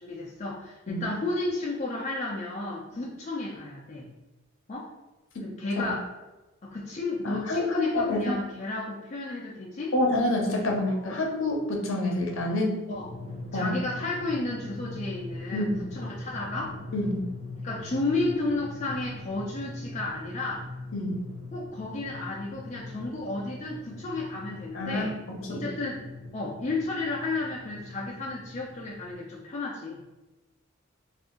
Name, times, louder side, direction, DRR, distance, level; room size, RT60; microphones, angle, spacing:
voice 1, 0.0-4.1 4.7-4.9 5.4-6.1 6.6-9.9 10.9-11.2 12.9-13.1 13.5-16.8 17.6-20.7 21.5-25.1 25.5-26.0 26.3-30.0, left 2 dB, 30° left, -4 dB, 0.4 m, -32 dB
voice 2, 7.2-8.4 9.9-12.8 13.5-13.7 15.5-15.8 16.9-17.2 20.9-21.2 24.7-25.6, left 1 dB, 65° left, 0 dB, 0.7 m, -28 dB
Drum, 13.0-29.1, left 2 dB, 25° right, 0.6 m, -41 dB
2.6 x 2.4 x 3.7 m, 1.1 s
head